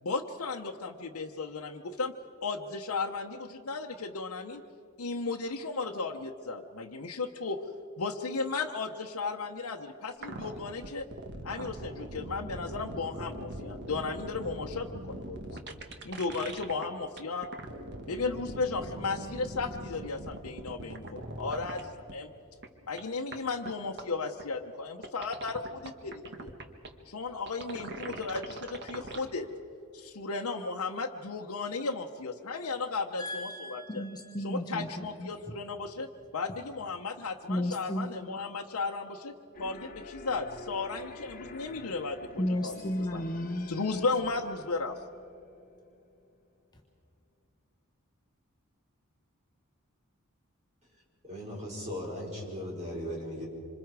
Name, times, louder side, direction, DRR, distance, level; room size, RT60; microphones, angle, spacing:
voice 1, 0.0-2.1 2.4-4.6 5.0-7.6 8.0-11.1 11.4-15.5 16.0-17.5 18.1-22.3 22.9-26.5 27.1-29.5 29.9-34.0 34.4-42.7 43.1-43.2 43.7-45.0, left 4 dB, 75° left, 1 dB, 0.9 m, -35 dB
sound 1, 10.2-16.9 17.2-21.8 22.1-22.2 22.6-22.7 23.0-23.1 23.3-23.4 23.7-23.8 24.0-24.1 24.4-24.5 25.0-26.9 27.5-29.2, right 1 dB, 50° right, 1.5 m, -41 dB
voice 2, 33.2-35.3 37.5-38.1 42.4-43.7 46.7-46.8, left 1 dB, 20° left, 0 dB, 1.3 m, -33 dB
sound 2, 39.5-46.3, left 2 dB, 40° left, 1.2 m, -48 dB
voice 3, 51.2-53.5, equal, 30° right, -3 dB, 5.4 m, -37 dB
26.0 x 26.0 x 4.8 m, 2.6 s
head